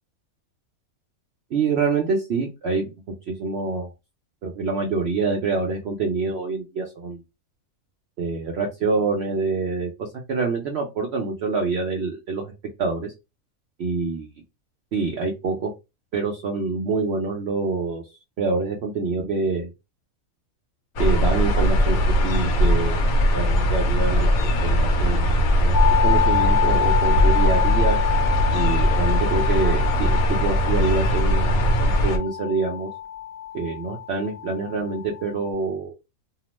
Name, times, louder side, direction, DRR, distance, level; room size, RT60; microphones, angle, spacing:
voice 1, 1.5-2.9 3.3-3.9 4.4-7.2 8.2-12.5 12.8-13.1 13.8-14.3 14.9-15.7 16.1-18.0 18.4-19.7 21.0-24.3 24.6-25.7 26.0-28.0 28.5-32.9 33.5-35.9, right 4 dB, 60° right, 1 dB, 0.7 m, -26 dB
sound 1, 21.0-32.2, equal, 75° left, 1.1 m, -20 dB
sound 2, 25.7-35.5, left 11 dB, 55° left, 0.5 m, -27 dB
2.8 x 2.0 x 3.0 m, 0.25 s
omnidirectional pair, 1.5 m